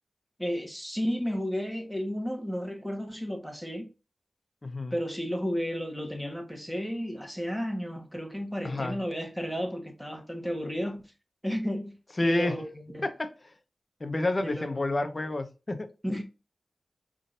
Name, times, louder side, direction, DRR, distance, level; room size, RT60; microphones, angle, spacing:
voice 1, 0.4-3.9 4.9-11.0 11.4-12.0 12.2-13.1 14.4-14.8 16.0-16.2, equal, 5° right, 1.3 m, -32 dB
voice 2, 4.6-4.9 8.6-9.0 12.2-12.5 13.0-13.5 14.0-15.9, left 2 dB, 35° left, 0.8 m, -29 dB
5.3 x 3.8 x 2.5 m
wide cardioid pair, 75°, 0 cm